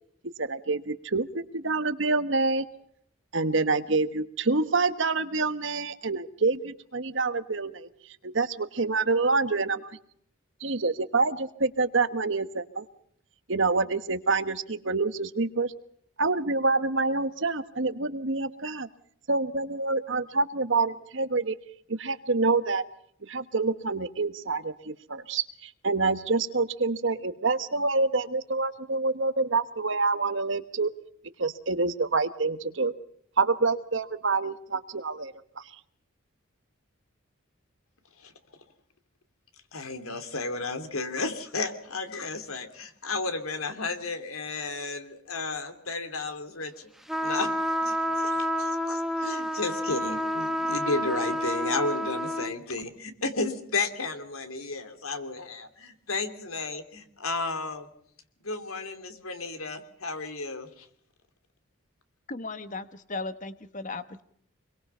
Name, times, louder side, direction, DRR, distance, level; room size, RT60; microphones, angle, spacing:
voice 1, 0.4-2.6 3.3-7.9 8.2-10.0 10.6-12.8 13.5-15.7 16.2-18.9 19.3-21.5 22.0-22.8 23.2-30.9 31.4-32.9 33.4-35.6, right 3 dB, 60° right, 12 dB, 1.3 m, -27 dB
voice 2, 39.7-46.9 47.2-47.5 47.8-57.9 58.4-60.9, left 3 dB, 85° left, 8 dB, 2.8 m, -33 dB
sound 1, 47.1-52.5, equal, ahead, 1.1 m, -29 dB
voice 3, 62.3-64.2, left 3 dB, 35° left, 12 dB, 1.1 m, -36 dB
25.5 x 22.5 x 5.6 m, 0.67 s
head